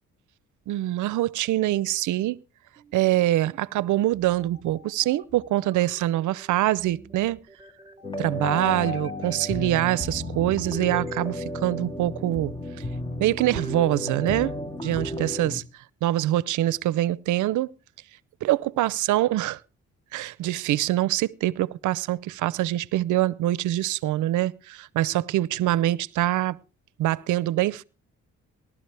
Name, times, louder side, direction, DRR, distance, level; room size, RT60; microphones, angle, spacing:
voice 1, 0.7-2.4 2.9-7.4 8.2-12.5 13.2-14.5 14.8-15.6 16.0-17.7 18.4-19.6 20.1-26.6 27.0-27.8, right 15 dB, 80° right, 0.6 m, -24 dB
sound 1, 2.8-11.2, right 4 dB, 20° right, 1.9 m, -51 dB
sound 2, 8.0-15.6, left 1 dB, 15° left, 1.4 m, -32 dB
19.0 x 12.0 x 3.3 m
cardioid pair, 90°, 30 cm